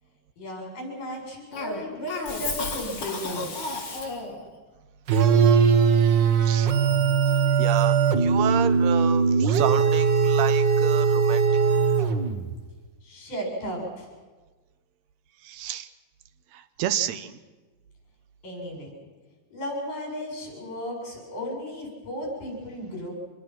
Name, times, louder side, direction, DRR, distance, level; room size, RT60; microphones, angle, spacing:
voice 1, 0.4-3.6 13.0-14.1 18.4-18.9 19.5-23.1, equal, 70° left, -1 dB, 8.7 m, -34 dB
Cough, 1.5-4.5, left 3 dB, 40° left, 3.8 m, -33 dB
sound 1, 5.1-12.5, right 6 dB, 90° right, 0.9 m, -20 dB
voice 2, 7.6-11.4 15.4-15.9 16.5-17.4, right 11 dB, 70° right, 11 dB, 1.8 m, -30 dB
25.5 x 21.0 x 6.1 m, 1.3 s
omnidirectional pair, 3.9 m